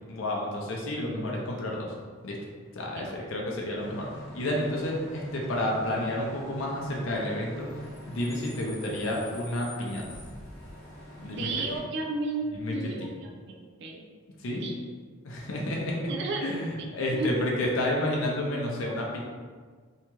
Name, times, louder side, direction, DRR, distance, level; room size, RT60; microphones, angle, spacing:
voice 1, 0.1-1.9 2.2-2.4 2.7-4.1 4.3-10.0 11.2-11.5 12.5-13.1 14.4-14.6 15.2-16.0 16.4-19.2, left 1 dB, 70° left, -2 dB, 0.5 m, -30 dB
Bus / Idling / Screech, 3.8-11.8, equal, 15° left, 0.7 m, -44 dB
voice 2, 11.4-14.0 14.6-14.8 16.1-16.5 17.1-17.3 17.8-17.9, right 2 dB, 55° right, 2 dB, 0.3 m, -33 dB
2.8 x 2.3 x 2.9 m, 1.5 s
head